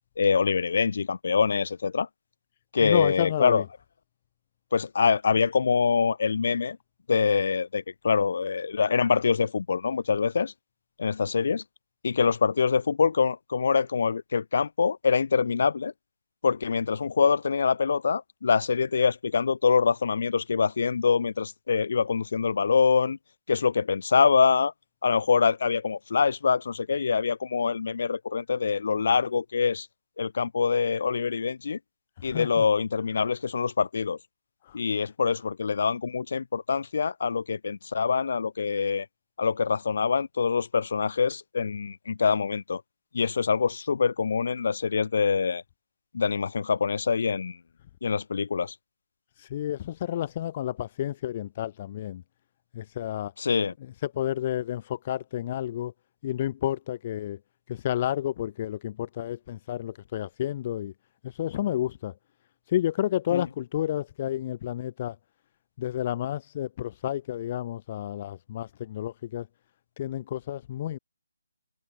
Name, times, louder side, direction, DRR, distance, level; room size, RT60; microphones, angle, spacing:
voice 1, 0.2-2.1 2.7-3.6 4.7-6.8 7.1-10.5 11.0-11.6 12.0-15.9 16.4-23.2 23.5-24.7 25.0-29.9 30.2-31.8 32.2-34.2 34.7-39.0 39.4-42.8 43.1-45.6 46.1-47.6 48.0-48.7 53.4-53.7 63.3-63.4, left 5 dB, 55° left, 6.4 m, -25 dB
voice 2, 2.8-3.7 32.2-32.6 34.6-34.8 49.4-52.2 52.7-53.3 53.8-55.9 56.2-57.4 57.7-60.9 61.2-62.1 62.7-65.2 65.8-69.5 70.0-71.0, left 12 dB, 30° left, 5.0 m, -30 dB
hypercardioid pair, 165°, 0 cm